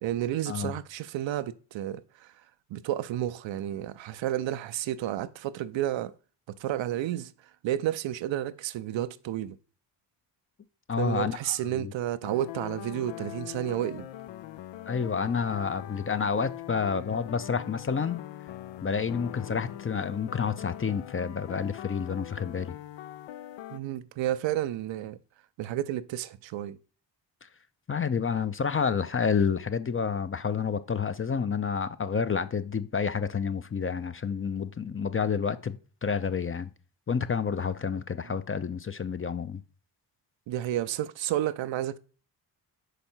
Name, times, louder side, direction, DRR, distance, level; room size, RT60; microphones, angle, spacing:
voice 1, 0.0-2.3 2.7-6.1 6.6-7.3 7.6-9.6 11.0-14.1 23.7-25.2 25.6-26.8 38.3-38.4 40.5-42.0, right 12 dB, 70° right, 0.6 m, -31 dB
voice 2, 10.9-11.9 14.9-18.2 18.8-22.7 27.9-35.8 36.0-36.7 37.1-39.6, left 6 dB, 30° left, 0.6 m, -29 dB
sound 1, 12.2-23.8, left 13 dB, 70° left, 0.6 m, -42 dB
5.4 x 5.0 x 4.4 m
supercardioid pair, 40°, 47 cm